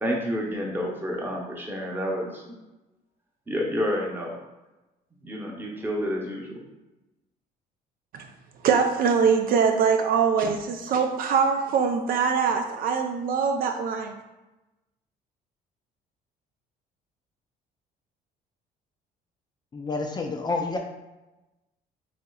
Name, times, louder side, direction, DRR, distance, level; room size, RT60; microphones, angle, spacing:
voice 1, 0.0-2.5 3.5-4.4 5.2-6.6, equal, 10° right, -1 dB, 0.8 m, -29 dB
voice 2, 8.6-14.1, right 6 dB, 60° right, 5 dB, 0.4 m, -23 dB
voice 3, 19.7-20.8, left 3 dB, 25° left, 2 dB, 0.4 m, -29 dB
4.1 x 2.8 x 2.3 m, 1.0 s
cardioid pair, 110°, 17 cm